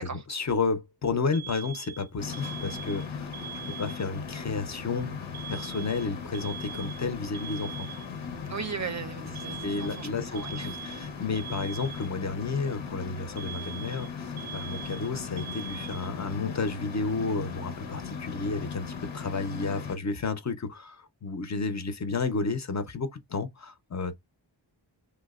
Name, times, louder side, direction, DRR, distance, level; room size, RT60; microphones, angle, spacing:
voice 1, 0.3-3.3 3.7-5.2 5.5-7.9 9.6-24.1, left 4 dB, 40° left, 0.5 m, -32 dB
Alarm, 1.3-4.3 5.3-8.3 9.4-12.3 13.4-16.3, right 9 dB, 90° right, 0.6 m, -42 dB
sound 1, 2.2-20.0, left 6 dB, 85° left, 0.7 m, -38 dB
voice 2, 8.5-10.8, right 5 dB, 40° right, 0.5 m, -37 dB
3.2 x 2.0 x 2.2 m
wide cardioid pair, 95°, 45 cm